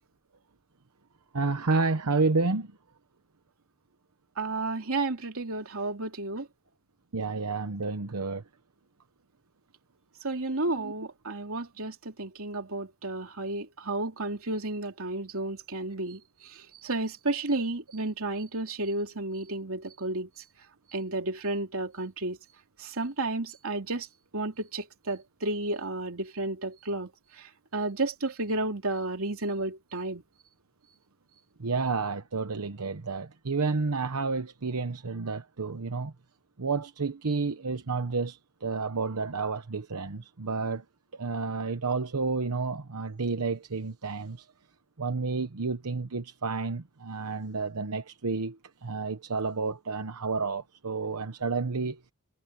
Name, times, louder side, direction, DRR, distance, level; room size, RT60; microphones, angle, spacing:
voice 1, 1.3-2.7 7.1-8.4 10.8-10.9 31.6-36.1 36.6-40.8 41.2-44.5 45.0-52.0, right 4 dB, 85° right, 1.0 m, -30 dB
voice 2, 4.4-6.5 10.2-16.2 16.8-20.3 20.9-22.4 22.8-24.1 24.3-27.1 27.7-30.2, right 2 dB, 65° right, 3.2 m, -32 dB
head